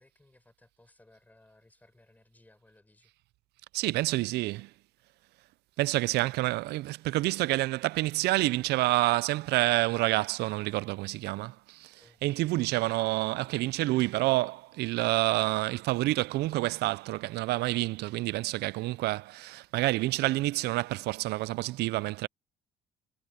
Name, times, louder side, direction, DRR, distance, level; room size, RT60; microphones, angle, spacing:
voice 1, 0.0-3.1 12.0-12.2, left 2 dB, 10° left, 5.3 m, -61 dB
voice 2, 3.7-4.7 5.8-22.3, right 19 dB, 75° right, 0.4 m, -28 dB
cardioid pair, 110°, 17 cm